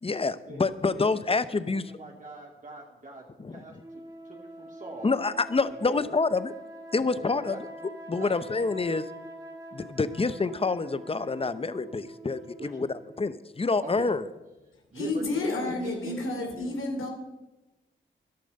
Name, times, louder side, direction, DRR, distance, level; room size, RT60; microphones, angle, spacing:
voice 1, 0.0-1.8 3.4-3.8 5.0-6.5 6.9-7.6 8.1-9.0 9.7-12.9 13.2-14.2, left 4 dB, 30° left, 14 dB, 0.8 m, -27 dB
voice 2, 0.9-5.2 5.8-6.0 7.5-7.6 8.2-8.4 12.6-12.7 13.8-14.1 14.9-16.7, right 2 dB, 40° right, -1 dB, 2.5 m, -41 dB
sound 1, 3.8-13.5, right 1 dB, 20° right, 3.0 m, -45 dB
voice 3, 14.9-17.1, left 2 dB, 85° left, 2 dB, 3.2 m, -31 dB
13.5 x 11.5 x 5.4 m, 1.1 s
cardioid pair, 70°, 20 cm